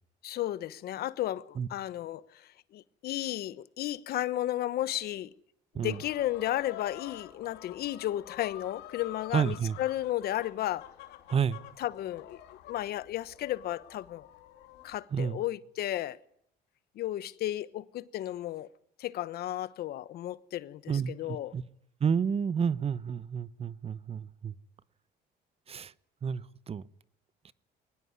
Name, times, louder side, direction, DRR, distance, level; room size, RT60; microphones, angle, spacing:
voice 1, 0.2-5.3 5.7-10.9 11.8-12.4 12.7-14.3 14.8-16.2 17.0-18.7 19.0-21.5, left 13 dB, 70° left, 1.0 m, -33 dB
sound 1, 5.8-15.0, left 12 dB, 90° left, 2.8 m, -49 dB
voice 2, 9.3-9.7 11.3-11.6 15.1-15.4 20.9-21.6 22.0-24.5 25.7-25.9 26.2-26.8, right 7 dB, 35° right, 0.9 m, -30 dB
22.5 x 19.5 x 9.6 m
cardioid pair, 110°, 17 cm